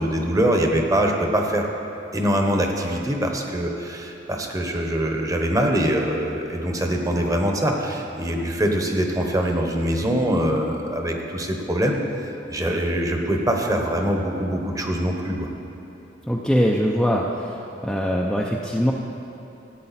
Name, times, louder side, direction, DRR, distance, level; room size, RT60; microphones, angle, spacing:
voice 1, 0.0-1.7 2.1-15.5, right 1 dB, 20° right, 2 dB, 1.0 m, -23 dB
voice 2, 16.3-17.6 17.8-18.9, equal, ahead, -3 dB, 0.5 m, -22 dB
15.0 x 8.7 x 4.2 m, 2.9 s
head